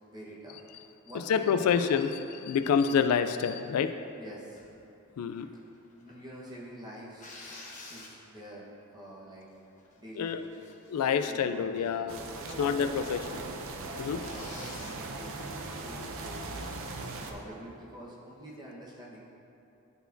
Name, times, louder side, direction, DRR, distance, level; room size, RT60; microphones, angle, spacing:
voice 1, 0.1-0.6 1.0-1.8 4.2-4.6 6.0-7.3 7.9-8.7 8.9-9.5 10.0-10.4 11.1-12.1 12.4-13.6 14.1-15.3 15.6-16.7 17.3-19.2, right 1 dB, 20° right, -5 dB, 1.1 m, -46 dB
voice 2, 1.3-3.9 5.2-5.5 10.2-10.4 10.9-12.2 12.6-13.4 14.0-14.2, left 7 dB, 85° left, 9 dB, 0.3 m, -27 dB
sound 1, 4.6-4.8 5.3-6.2 7.2-8.5 9.1-9.2 9.6-9.9 10.3-11.2 11.7-12.0 12.3-12.4 13.0-13.1 13.3-13.4 14.2-15.0 17.3-17.7, left 2 dB, 35° left, 0.9 m, -49 dB
sound 2, 12.1-17.3, right 2 dB, 65° right, 0.6 m, -39 dB
11.0 x 4.5 x 2.6 m, 2.8 s
head